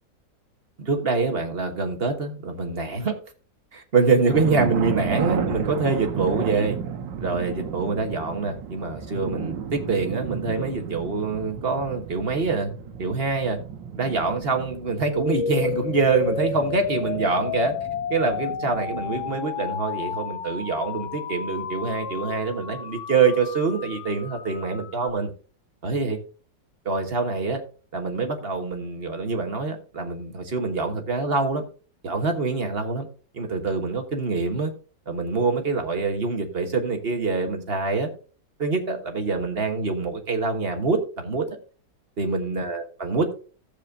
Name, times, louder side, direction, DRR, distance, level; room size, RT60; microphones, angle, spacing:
voice 1, 0.8-3.1 3.7-6.8 7.2-12.7 13.0-13.6 13.9-17.7 18.1-25.3 25.8-26.2 26.8-27.6 27.9-31.6 32.0-33.1 33.3-34.7 35.1-38.1 38.6-41.4 42.2-43.3, right 4 dB, 35° right, 5 dB, 1.4 m, -25 dB
sound 1, 4.3-19.4, right 7 dB, 85° right, 1.7 m, -33 dB
sound 2, 15.1-25.1, left 7 dB, 55° left, 0.9 m, -32 dB
13.5 x 7.6 x 2.7 m, 0.37 s
omnidirectional pair, 2.0 m